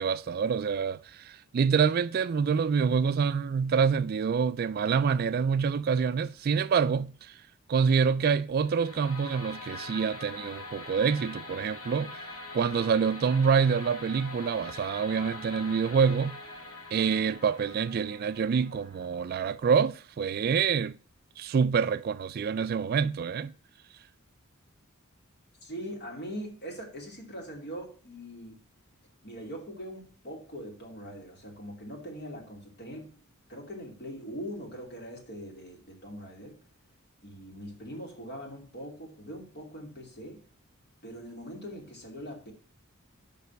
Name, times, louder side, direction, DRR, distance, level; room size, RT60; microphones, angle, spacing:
voice 1, 0.0-7.4 7.7-12.2 12.5-16.4 16.9-21.0 21.4-23.5, right 6 dB, 45° right, 0.3 m, -26 dB
sound 1, 8.6-19.7, left 2 dB, 80° left, 2.0 m, -44 dB
voice 2, 25.6-28.6 29.2-33.2 33.5-36.6 37.2-40.5 41.0-42.5, equal, 50° left, 2.6 m, -42 dB
6.7 x 5.4 x 6.8 m
head